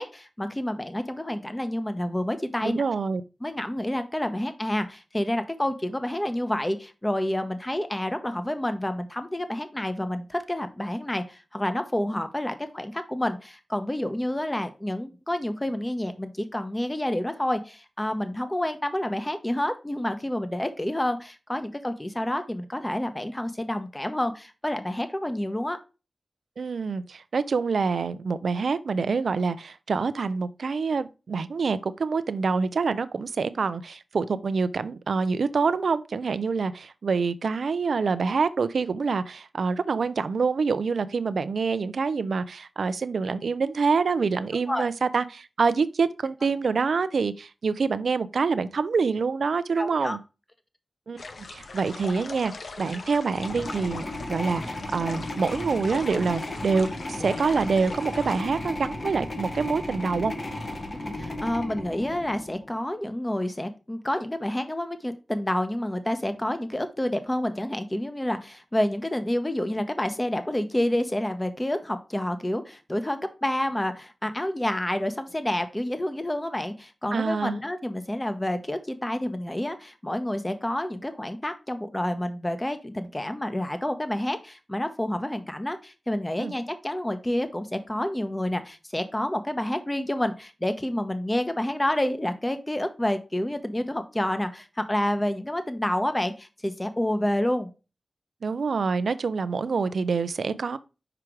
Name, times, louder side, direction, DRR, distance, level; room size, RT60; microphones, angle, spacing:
voice 1, 0.0-2.8 3.4-25.8 44.7-44.9 49.8-50.2 61.0-97.7, left 1 dB, 20° left, 1.1 m, -29 dB
voice 2, 2.6-3.2 26.6-50.2 51.1-51.2 51.5-52.5 52.8-54.0 54.3-60.3 77.1-77.6 86.4-86.5 98.4-100.8, right 5 dB, 85° right, 0.5 m, -26 dB
sound 1, 51.2-58.4, left 3 dB, 75° left, 0.7 m, -40 dB
sound 2, 53.3-62.7, left 1 dB, 60° left, 1.6 m, -35 dB
5.9 x 4.9 x 4.6 m
cardioid pair, 55°, 0 cm